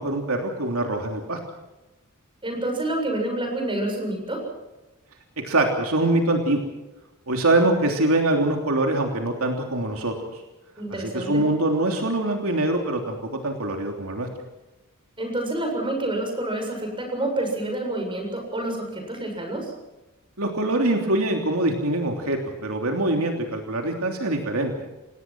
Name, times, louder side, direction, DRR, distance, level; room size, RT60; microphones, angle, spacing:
voice 1, 0.0-1.4 5.4-6.6 7.3-10.1 10.9-14.3 20.4-24.7, right 2 dB, 75° right, 3 dB, 3.2 m, -24 dB
voice 2, 2.4-4.4 10.8-11.4 15.2-19.7, right 1 dB, 25° right, 3 dB, 7.4 m, -28 dB
29.0 x 18.5 x 6.2 m, 1.0 s
head